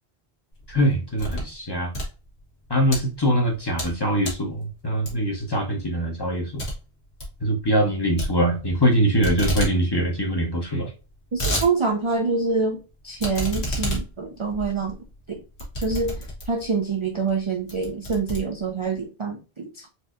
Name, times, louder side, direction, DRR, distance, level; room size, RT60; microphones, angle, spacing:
sound 1, 0.6-1.5 1.8-3.0 3.5-4.0 4.2-4.5 5.1-5.4 5.8-5.9 6.2-6.3 6.6-6.7 7.0-7.3 8.2-8.9 9.2-9.7 10.1-10.2 10.3-10.4 11.0-11.7 12.1-12.2 13.2-16.7 17.3-17.4 17.7-18.9, equal, 85° left, 1.5 m, -29 dB
voice 1, 0.7-1.9 2.7-6.6 7.4-10.9, equal, 25° left, 0.8 m, -23 dB
voice 2, 11.3-12.8 13.0-15.0 15.3-15.4 15.8-19.9, right 4 dB, 45° right, 0.4 m, -26 dB
4.2 x 2.6 x 2.4 m
omnidirectional pair, 1.1 m